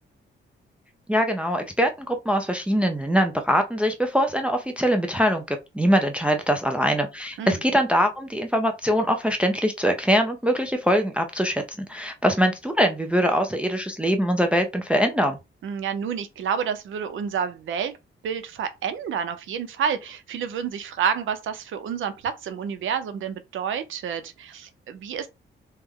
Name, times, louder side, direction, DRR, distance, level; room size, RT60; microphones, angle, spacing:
voice 1, 1.1-15.4, equal, 5° right, 0.3 m, -23 dB
voice 2, 15.6-18.0 18.2-25.3, right 7 dB, 80° right, 0.5 m, -29 dB
3.2 x 2.1 x 3.5 m
wide cardioid pair, 160°, 20 cm